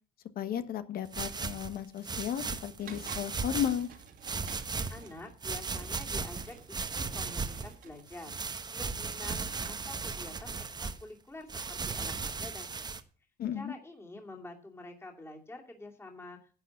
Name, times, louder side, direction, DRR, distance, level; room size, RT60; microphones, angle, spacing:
voice 1, 0.3-3.9 13.4-13.7, left 9 dB, 60° left, 11 dB, 1.3 m, -34 dB
sound 1, 1.1-3.8 4.2-5.1 5.4-7.7 8.1-11.0 11.5-13.0, right 4 dB, 25° right, 1.1 m, -36 dB
sound 2, 2.8-8.0, right 6 dB, 60° right, 2.3 m, -50 dB
voice 2, 4.9-13.0 13.5-16.5, left 2 dB, 15° left, 0 dB, 2.6 m, -48 dB
11.5 x 8.0 x 7.2 m, 0.41 s
cardioid pair, 110°, 17 cm